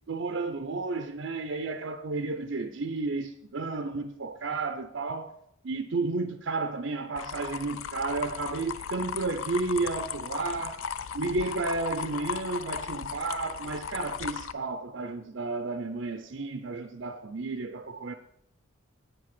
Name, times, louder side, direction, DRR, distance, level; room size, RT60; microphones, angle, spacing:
voice 1, 0.1-5.3 5.6-10.8 11.1-18.1, right 3 dB, 60° right, 0.5 m, -32 dB
sound 1, 7.2-14.5, left 7 dB, 70° left, 0.4 m, -36 dB
8.7 x 7.6 x 5.9 m
head